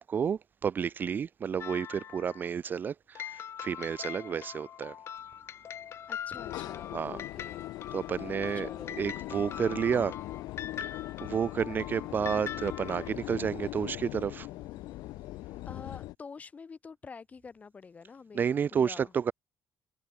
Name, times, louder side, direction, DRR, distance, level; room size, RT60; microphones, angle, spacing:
voice 1, 0.0-4.9 6.9-7.2 7.9-8.7 9.0-10.1 10.8-14.5 18.3-19.3, right 7 dB, 30° right, 0.6 m, -31 dB
sound 1, 1.6-2.5 3.2-13.1, left 9 dB, 40° left, 2.6 m, -42 dB
voice 2, 6.1-7.9 8.5-9.0 9.5-10.0 15.7-19.1, left 5 dB, 20° left, 2.5 m, -47 dB
sound 2, 6.4-16.2, left 18 dB, 80° left, 1.1 m, -40 dB
cardioid pair, 170°, 7 cm